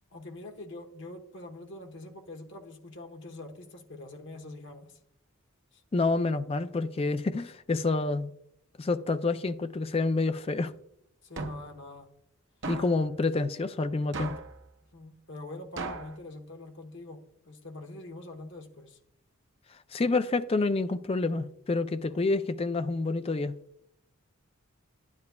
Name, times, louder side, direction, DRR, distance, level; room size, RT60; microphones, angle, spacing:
voice 1, 0.1-5.0 5.7-5.8 11.2-12.1 14.9-19.0 22.1-22.2, left 2 dB, 60° left, 1.2 m, -44 dB
voice 2, 5.9-8.3 8.8-10.7 12.7-14.3 19.9-23.5, left 3 dB, 25° left, 0.3 m, -28 dB
sound 1, 11.4-11.8 12.6-13.1 14.1-14.6 15.8-16.2, right 3 dB, 55° right, 0.7 m, -37 dB
10.5 x 9.6 x 2.3 m
head